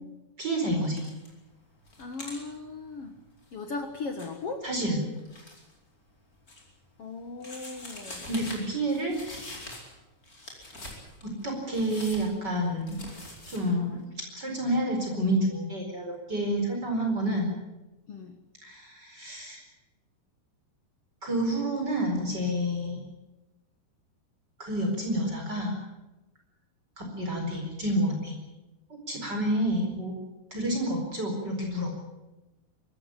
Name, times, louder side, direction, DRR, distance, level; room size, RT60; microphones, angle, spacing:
voice 1, 0.4-1.0 4.6-5.0 8.3-9.2 11.2-13.0 13.5-14.0 14.3-17.5 18.6-19.6 21.2-23.0 24.6-25.8 27.0-28.4 29.1-30.1 30.5-31.9, right 1 dB, 25° right, 1 dB, 4.8 m, -29 dB
sound 1, 0.9-1.3 1.7-5.7 6.1-6.9 7.4-10.0 10.2-13.6, left 1 dB, 20° left, 4.6 m, -44 dB
voice 2, 2.0-3.2 3.5-4.7 7.0-8.3 18.1-18.4, left 3 dB, 70° left, 5 dB, 1.4 m, -37 dB
23.5 x 14.5 x 9.8 m, 1.0 s
omnidirectional pair, 5.1 m